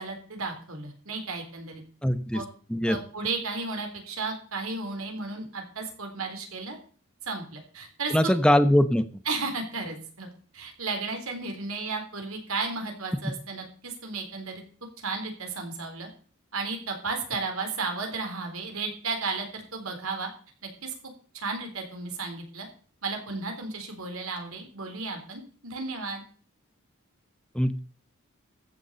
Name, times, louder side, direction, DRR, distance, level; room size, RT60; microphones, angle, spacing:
voice 1, 0.0-1.8 2.3-2.4 2.9-6.8 7.2-8.3 9.3-10.3 10.5-14.6 15.0-16.1 16.5-20.3 20.6-20.9 21.3-22.7 23.0-26.2, right 4 dB, 90° right, 4 dB, 3.9 m, -34 dB
voice 2, 2.0-2.4 2.7-3.0 8.1-9.0 27.5-27.8, left 1 dB, 5° left, 10 dB, 0.9 m, -21 dB
14.5 x 7.2 x 6.9 m, 0.43 s
head